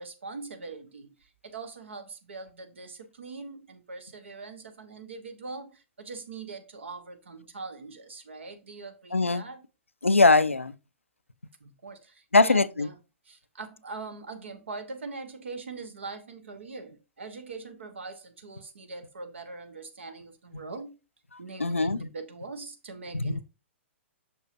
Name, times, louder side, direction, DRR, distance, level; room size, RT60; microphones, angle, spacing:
voice 1, 0.0-9.6 11.6-13.0 13.2-21.0 21.4-23.4, right 3 dB, 65° right, 1.4 m, -42 dB
voice 2, 9.1-9.4 10.0-10.7 12.3-12.9 21.6-22.0 23.1-23.3, left 3 dB, 85° left, 0.5 m, -21 dB
6.9 x 6.3 x 2.7 m
figure-of-eight pair, 115°, 7 cm